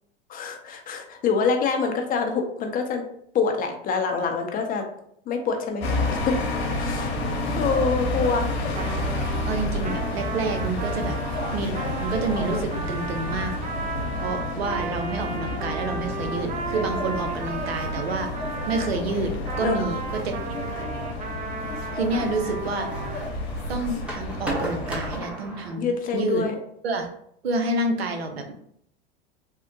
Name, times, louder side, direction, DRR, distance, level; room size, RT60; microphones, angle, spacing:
voice 1, 0.3-3.0 3.3-4.8 5.3-5.8 6.1-6.4 6.8-7.1 7.6-8.5 19.6-19.7 25.8-26.6, left 5 dB, 30° left, 4 dB, 0.5 m, -25 dB
sound 1, 5.8-25.2, left 2 dB, 80° left, 0.9 m, -30 dB
Trumpet, 8.7-19.0 19.5-23.2, right 4 dB, 25° right, 0.4 m, -34 dB
voice 2, 9.5-11.7 12.0-13.5 14.1-18.3 18.6-19.3 19.6-20.6 21.9-22.9 23.7-26.5 26.8-27.1 27.4-28.5, right 3 dB, 90° right, 5 dB, 0.6 m, -28 dB
sound 2, 19.4-25.7, right 1 dB, 5° right, 0.8 m, -37 dB
3.5 x 2.1 x 2.7 m, 0.69 s
hypercardioid pair, 95°, 30 cm